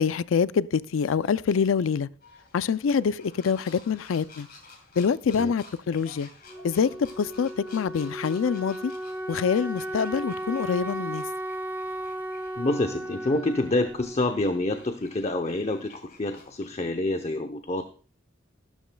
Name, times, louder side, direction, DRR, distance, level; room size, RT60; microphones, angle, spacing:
voice 1, 0.0-2.1 2.5-4.5 5.0-6.3 6.6-8.9 9.3-11.2, left 6 dB, 85° left, 0.4 m, -25 dB
sound 1, 2.2-16.6, left 3 dB, 50° left, 2.8 m, -52 dB
Wind instrument woodwind instrument, 6.5-15.2, right 1 dB, 10° right, 0.9 m, -36 dB
voice 2, 12.6-17.8, left 2 dB, 35° left, 0.7 m, -27 dB
13.5 x 12.5 x 2.3 m
head